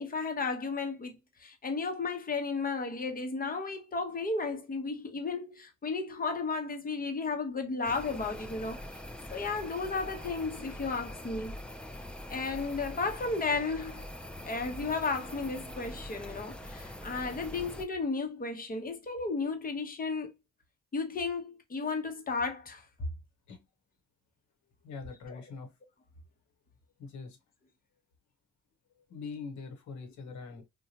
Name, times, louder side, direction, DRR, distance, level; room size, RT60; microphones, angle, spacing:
voice 1, 0.0-8.8 9.3-11.6 12.3-14.1 14.4-20.3 20.9-22.8 25.3-25.4, left 4 dB, 30° left, 0.8 m, -34 dB
sound 1, 7.8-17.9, left 1 dB, 5° left, 0.4 m, -43 dB
voice 2, 24.8-25.7 27.0-27.4 29.1-30.6, left 4 dB, 70° left, 0.9 m, -43 dB
2.8 x 2.2 x 2.7 m
cardioid pair, 90°, 30 cm